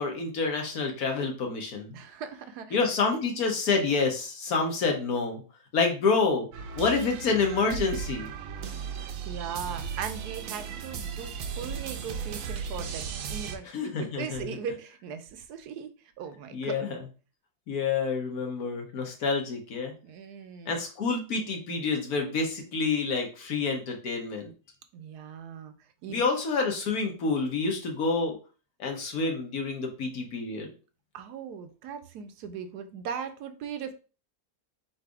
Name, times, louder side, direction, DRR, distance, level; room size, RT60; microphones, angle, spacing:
voice 1, 0.0-2.0 2.7-5.4 5.7-6.5 6.7-8.3 13.7-14.5 16.5-16.9 17.7-19.9 20.7-24.5 26.1-28.3 28.8-30.7, left 4 dB, 70° left, 2 dB, 1.5 m, -28 dB
voice 2, 1.9-2.8 9.0-13.0 13.3-15.9 16.2-16.9 20.0-20.8 24.9-25.7 26.0-26.3 31.1-33.9, right 7 dB, 85° right, 8 dB, 1.2 m, -39 dB
sound 1, 6.5-13.6, right 7 dB, 65° right, 0.9 m, -36 dB
4.1 x 2.6 x 4.7 m, 0.35 s
omnidirectional pair, 1.7 m